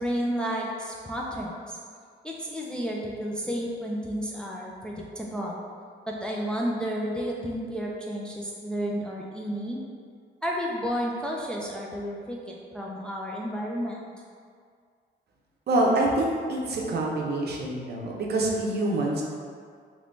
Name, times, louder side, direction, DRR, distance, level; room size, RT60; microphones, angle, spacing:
voice 1, 0.0-1.8 2.2-5.6 6.1-9.8 10.4-14.0, equal, 5° left, -3 dB, 0.4 m, -31 dB
voice 2, 15.7-19.2, right 2 dB, 55° right, -2 dB, 0.7 m, -26 dB
3.2 x 3.0 x 2.6 m, 2.1 s
cardioid pair, 90°, 20 cm